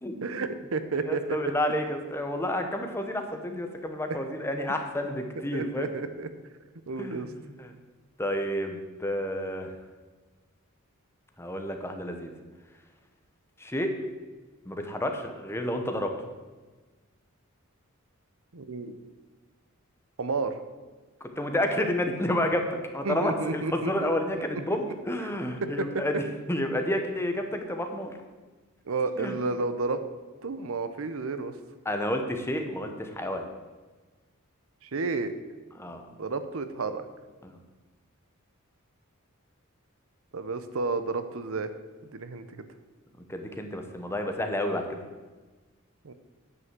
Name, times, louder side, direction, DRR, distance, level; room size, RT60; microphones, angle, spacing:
voice 1, 0.2-1.4 4.1-4.2 5.5-6.3 6.9-7.3 18.5-19.0 20.2-20.6 23.0-24.2 25.2-25.3 25.6-26.0 28.9-30.0 30.4-31.5 34.8-35.3 36.1-37.0 40.3-41.7 42.1-42.7 46.0-46.1, right 3 dB, 70° right, 11 dB, 0.7 m, -31 dB
voice 2, 1.1-5.9 7.0-7.2 7.6-7.7 8.2-9.7 11.4-12.3 13.6-13.9 14.7-16.1 21.4-22.7 22.9-26.2 26.5-28.1 29.2-29.3 31.8-33.4 35.8-36.0 37.4-37.6 43.3-45.0, left 1 dB, 10° left, 5 dB, 0.9 m, -30 dB
9.6 x 5.6 x 7.4 m, 1.3 s
head